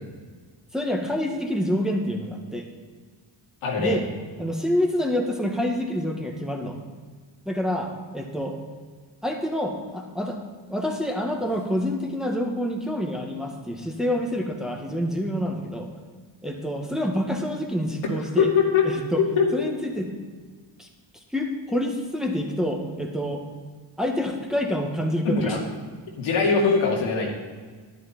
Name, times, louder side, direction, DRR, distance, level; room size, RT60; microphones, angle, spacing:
voice 1, 0.7-2.6 3.8-4.0 4.4-6.8 7.4-8.6 9.2-10.4 10.7-15.9 16.4-18.5 18.8-19.2 19.5-20.1 20.8-20.9 21.3-23.4 24.0-25.6, equal, ahead, 1 dB, 1.7 m, -27 dB
voice 2, 3.6-4.0 18.4-18.8 19.4-19.5 25.2-25.6 26.2-27.3, left 5 dB, 90° left, -2 dB, 2.3 m, -21 dB
10.5 x 10.0 x 4.3 m, 1.5 s
cardioid pair, 75°, 48 cm